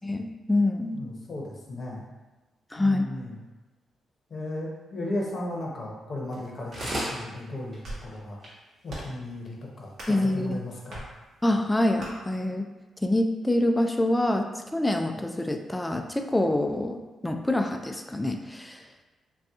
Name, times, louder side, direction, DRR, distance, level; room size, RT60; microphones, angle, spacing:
voice 1, 0.0-1.0 2.7-3.1 10.1-10.6 11.4-12.7 13.0-18.8, left 1 dB, 10° left, 5 dB, 0.3 m, -26 dB
voice 2, 0.9-2.1 2.8-3.4 4.3-8.4 8.8-11.1, left 1 dB, 45° left, -2 dB, 0.8 m, -35 dB
sound 1, 6.3-6.5 6.7-7.2 7.7-7.8 8.1-8.2 8.4-8.5 9.1-9.2, right 1 dB, 40° right, 1.0 m, -32 dB
sound 2, 6.5-7.0 7.6-8.1 8.9-9.2 9.9-10.2 10.9-11.1 12.0-12.1, right 1 dB, 75° right, 1.1 m, -39 dB
2.7 x 2.3 x 3.5 m, 1.2 s
cardioid pair, 80°, 0 cm